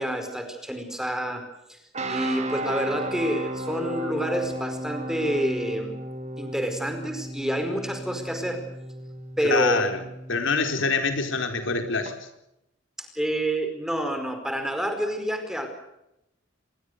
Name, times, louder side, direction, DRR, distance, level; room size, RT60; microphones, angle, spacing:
voice 1, 0.0-1.4 1.7-1.8 2.1-5.9 6.4-8.6 9.4-9.8 10.6-10.9 13.1-15.7, right 1 dB, 5° right, 6 dB, 4.8 m, -28 dB
sound 1, 1.9-12.1, right 1 dB, 35° right, 3.6 m, -35 dB
voice 2, 9.4-10.0 10.3-12.1, left 4 dB, 70° left, 6 dB, 4.3 m, -25 dB
27.5 x 21.0 x 6.7 m, 0.86 s
head